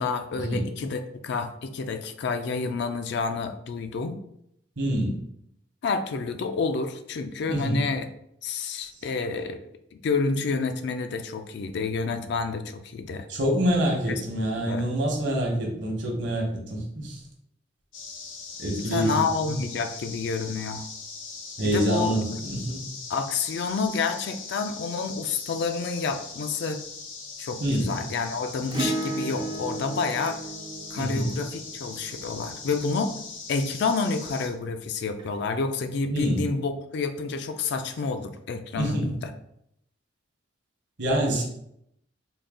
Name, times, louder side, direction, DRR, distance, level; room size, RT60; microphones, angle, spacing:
voice 1, 0.0-4.2 5.8-8.1 8.4-9.6 9.9-13.3 14.5-14.9 18.9-20.9 21.6-22.2 23.1-26.8 27.4-30.4 30.9-33.1 33.5-39.3, left 4 dB, 60° left, 8 dB, 0.3 m, -29 dB
voice 2, 4.8-5.1 7.5-7.8 13.3-17.2 18.6-19.6 21.6-22.8 27.6-27.9 28.8-28.9 30.9-31.3 36.1-36.4 38.8-39.1 41.0-41.4, right 1 dB, 65° right, 0 dB, 1.0 m, -26 dB
sound 1, 17.9-34.5, left 4 dB, 90° left, 0.8 m, -40 dB
Acoustic guitar / Strum, 28.7-33.3 35.2-35.3, right 2 dB, 20° right, 0.3 m, -34 dB
3.8 x 2.2 x 3.6 m, 0.75 s
head